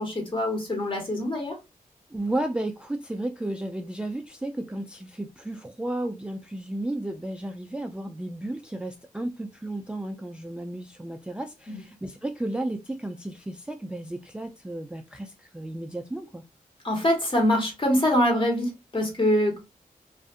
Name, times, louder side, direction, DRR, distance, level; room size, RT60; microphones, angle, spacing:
voice 1, 0.0-1.6 11.7-11.8 16.8-19.6, left 1 dB, 35° left, 1.4 m, -24 dB
voice 2, 2.1-16.4, right 1 dB, 5° right, 0.3 m, -33 dB
2.5 x 2.4 x 2.3 m
cardioid pair, 65°, 15 cm